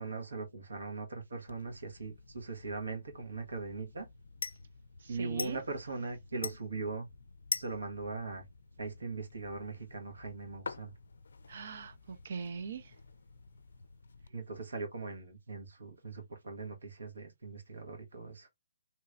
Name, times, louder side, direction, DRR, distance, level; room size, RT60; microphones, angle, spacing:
voice 1, 0.0-4.1 5.1-7.1 7.5-8.4 8.8-10.9 14.3-18.5, right 3 dB, 85° right, 1.3 m, -40 dB
sound 1, 1.5-14.3, left 4 dB, 80° left, 0.4 m, -46 dB
voice 2, 5.0-5.6 11.5-12.9, right 5 dB, 60° right, 0.7 m, -41 dB
3.2 x 2.9 x 2.4 m
hypercardioid pair, 150°, 0 cm